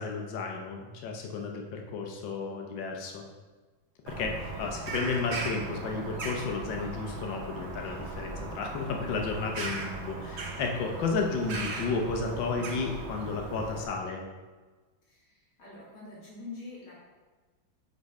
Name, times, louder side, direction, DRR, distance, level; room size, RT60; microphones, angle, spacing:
voice 1, 0.0-3.2 4.0-14.2, left 4 dB, 70° left, 2 dB, 1.5 m, -33 dB
Bird vocalization bird call bird song, 4.1-13.9, right 3 dB, 75° right, 0.6 m, -38 dB
voice 2, 15.1-17.0, left 3 dB, 90° left, -7 dB, 2.8 m, -45 dB
5.3 x 3.9 x 4.8 m, 1.3 s
omnidirectional pair, 2.2 m